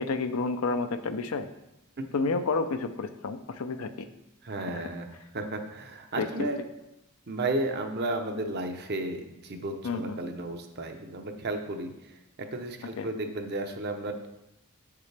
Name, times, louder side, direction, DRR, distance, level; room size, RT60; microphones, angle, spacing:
voice 1, 0.0-1.5 2.1-3.9 4.7-4.8 6.2-6.3 9.8-10.2 13.0-13.1, left 3 dB, 75° left, 9 dB, 0.6 m, -30 dB
voice 2, 4.4-5.1 5.3-6.6 7.3-14.3, right 2 dB, 50° right, 5 dB, 0.8 m, -33 dB
8.1 x 6.7 x 3.4 m, 0.89 s
head